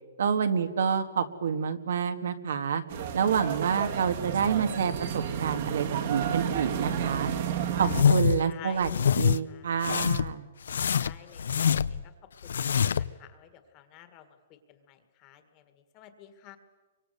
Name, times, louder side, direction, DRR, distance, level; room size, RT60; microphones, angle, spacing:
voice 1, 0.2-2.8 3.1-7.3 7.8-8.9 9.2-10.5, right 7 dB, 70° right, 8 dB, 1.9 m, -28 dB
sound 1, 2.9-8.0, right 8 dB, 40° right, 1.7 m, -31 dB
sound 2, 7.8-8.4 8.8-9.4 9.8-10.3 10.7-12.0 12.4-13.1, left 7 dB, 80° left, 0.7 m, -25 dB
voice 2, 8.5-9.8 11.0-12.1 12.4-16.6, left 11 dB, 20° left, 9 dB, 1.7 m, -51 dB
29.5 x 24.5 x 6.8 m, 1.3 s
hypercardioid pair, 175°, 0 cm